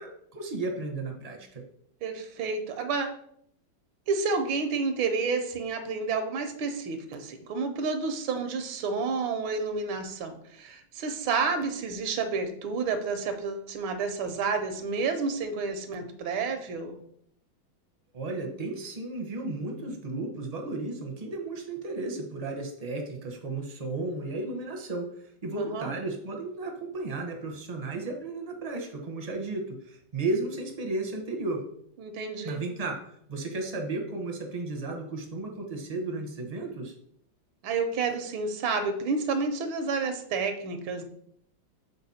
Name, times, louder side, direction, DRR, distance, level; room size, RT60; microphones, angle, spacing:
voice 1, 0.0-1.6 18.1-25.1 25.4-31.6 32.4-33.0 33.3-36.9, right 2 dB, 40° right, 2 dB, 0.5 m, -34 dB
voice 2, 2.0-3.1 4.1-17.0 25.6-25.9 32.0-32.6 37.6-41.0, right 4 dB, 85° right, 7 dB, 1.6 m, -30 dB
6.9 x 4.1 x 4.2 m, 0.68 s
omnidirectional pair, 2.2 m